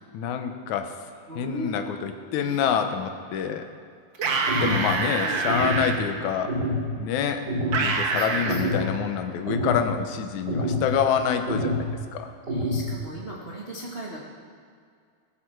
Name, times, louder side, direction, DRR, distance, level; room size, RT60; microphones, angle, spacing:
voice 1, 0.1-0.9 1.4-3.7 4.6-6.7 7.0-7.4 7.8-12.3, left 8 dB, 70° left, 7 dB, 2.1 m, -27 dB
voice 2, 1.3-1.7 2.4-2.6 4.2-6.3 7.7-8.9 12.5-14.2, right 1 dB, 90° right, -4 dB, 0.5 m, -38 dB
sound 1, 4.1-5.9 7.7-8.6, right 4 dB, 60° right, 1.2 m, -26 dB
sound 2, 4.5-4.9 5.5-5.9 6.5-6.9 7.5-7.9 8.5-8.9 9.5-9.9 10.5-10.9 11.5-11.9 12.5-12.9, equal, 30° right, 2.7 m, -27 dB
16.5 x 13.5 x 4.6 m, 2.2 s
omnidirectional pair, 4.0 m